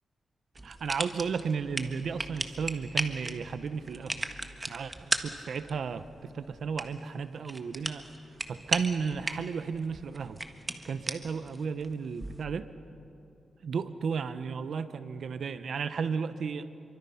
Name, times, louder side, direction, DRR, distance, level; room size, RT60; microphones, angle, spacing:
sound 1, 0.5-12.5, right 2 dB, 20° right, 1.5 m, -37 dB
voice 1, 0.6-4.2 4.7-8.1 8.5-10.4 10.8-12.7 13.6-16.7, right 5 dB, 75° right, 12 dB, 1.0 m, -34 dB
29.0 x 24.0 x 5.8 m, 2.7 s
cardioid pair, 85°, 0 cm